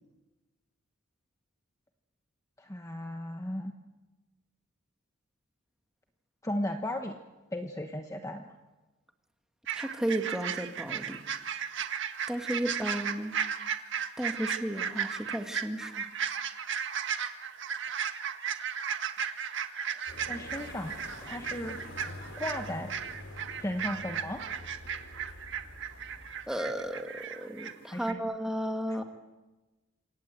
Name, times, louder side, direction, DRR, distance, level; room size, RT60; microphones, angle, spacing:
voice 1, 2.6-3.7 6.4-7.1 7.5-8.5 19.9-20.9 21.2-21.8 22.4-22.9 23.6-24.4 27.8-28.2 28.9-29.0, left 1 dB, 15° left, 4 dB, 1.2 m, -36 dB
sound 1, 9.7-27.7 28.0-28.1, right 7 dB, 60° right, 1.7 m, -35 dB
voice 2, 9.8-11.2 12.3-13.4 14.2-16.1 26.5-29.0, right 1 dB, 5° right, 5 dB, 2.0 m, -34 dB
sound 2, 20.1-27.0, left 1 dB, 60° left, 4.3 m, -47 dB
28.0 x 26.5 x 7.9 m, 1.2 s
head